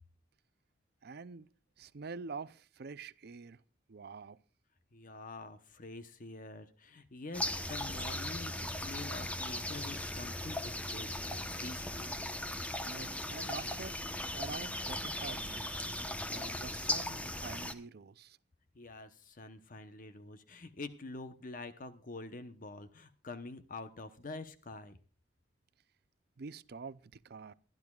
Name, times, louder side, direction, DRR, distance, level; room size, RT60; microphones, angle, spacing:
voice 1, 1.0-1.5 1.8-3.6 3.9-4.4 12.8-14.0 14.3-15.8 16.3-18.4 26.4-27.5, right 4 dB, 60° right, 0.5 m, -46 dB
voice 2, 4.9-12.2 18.7-25.0, left 3 dB, 45° left, 0.9 m, -46 dB
sound 1, 7.3-17.7, left 1 dB, 10° left, 0.9 m, -38 dB
23.0 x 12.0 x 2.4 m
head